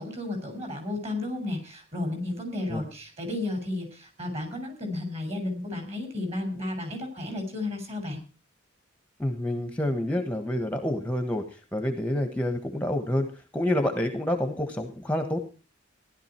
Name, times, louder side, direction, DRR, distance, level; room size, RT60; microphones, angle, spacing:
voice 1, 0.0-8.2, left 2 dB, 35° right, 5 dB, 5.8 m, -33 dB
voice 2, 9.2-15.4, left 1 dB, 5° left, 6 dB, 1.3 m, -28 dB
16.0 x 12.0 x 4.4 m, 0.35 s
head